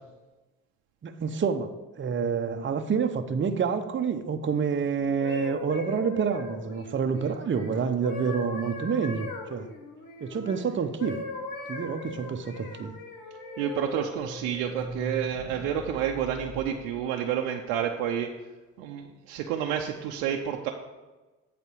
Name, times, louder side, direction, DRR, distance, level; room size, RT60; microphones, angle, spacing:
voice 1, 1.0-1.7 2.0-9.7 10.2-11.2 11.7-13.0, right 6 dB, 30° right, 7 dB, 0.8 m, -28 dB
sound 1, 5.0-10.6 11.0-13.9 14.5-14.8, left 3 dB, 65° left, 1.4 m, -39 dB
sound 2, 13.2-17.8, equal, 45° left, 1.8 m, -40 dB
voice 2, 13.6-18.3 18.8-20.7, right 9 dB, 75° right, 2 dB, 0.7 m, -30 dB
8.1 x 4.2 x 7.1 m, 1.2 s
hypercardioid pair, 50°, 38 cm